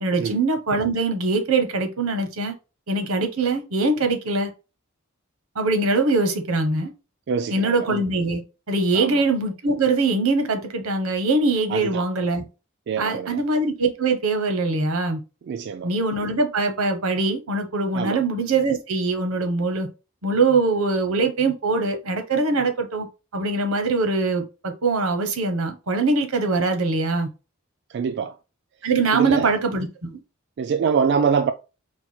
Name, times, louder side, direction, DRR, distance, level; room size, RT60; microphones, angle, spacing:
voice 1, 0.0-2.5 2.9-4.5 5.6-6.9 7.5-8.4 8.7-12.4 13.0-15.2 15.8-19.9 20.2-23.1 23.3-27.3 28.8-29.9, right 3 dB, 85° right, 1.0 m, -22 dB
voice 2, 7.3-7.7 8.9-9.2 11.7-12.0 12.9-13.4 15.5-15.9 17.9-18.2 27.9-28.3 29.1-29.5 30.6-31.5, right 6 dB, 55° right, 0.3 m, -24 dB
4.5 x 2.2 x 4.3 m
head